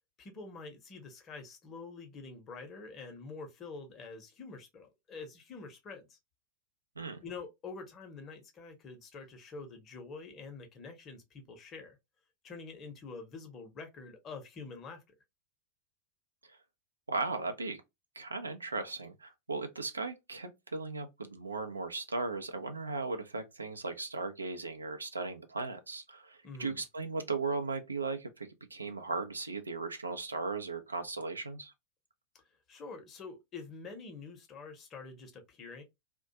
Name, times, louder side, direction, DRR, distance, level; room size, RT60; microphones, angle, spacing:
voice 1, 0.2-6.2 7.2-12.0 12.4-15.0 26.4-26.8 32.7-35.8, left 4 dB, 30° left, 0.7 m, -46 dB
voice 2, 17.1-17.8 18.2-31.7, right 3 dB, 80° right, 0.4 m, -37 dB
2.3 x 2.1 x 2.7 m
figure-of-eight pair, 90°, 0 cm